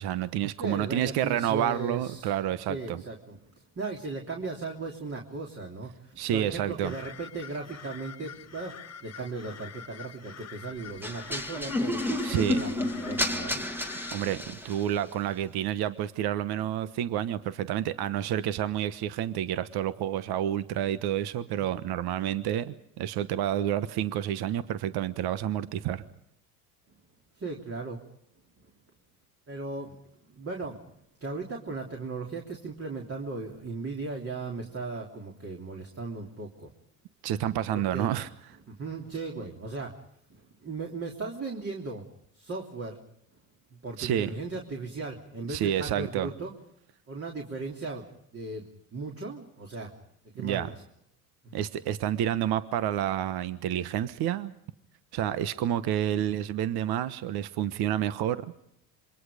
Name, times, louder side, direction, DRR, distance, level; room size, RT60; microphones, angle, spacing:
voice 1, 0.0-3.0 6.2-6.9 12.2-12.6 14.1-26.0 37.2-38.3 44.0-44.3 45.5-46.3 50.4-50.7 51.5-54.5 55.1-58.4, right 11 dB, 55° right, 13 dB, 1.3 m, -29 dB
voice 2, 0.6-2.3 2.7-13.7 27.3-28.0 28.6-28.7 29.5-30.9 31.2-36.7 37.7-38.2 38.7-39.9 40.3-42.1 42.3-43.0 43.7-46.5 47.1-48.1 48.3-49.9 50.4-50.7 51.4-51.5, right 3 dB, 30° right, 0 dB, 3.4 m, -37 dB
sound 1, 6.8-14.2, left 7 dB, 35° left, 1.4 m, -46 dB
sound 2, 11.0-14.9, left 1 dB, 5° right, 1.8 m, -31 dB
27.0 x 23.5 x 5.1 m, 0.75 s
hypercardioid pair, 85°, 44 cm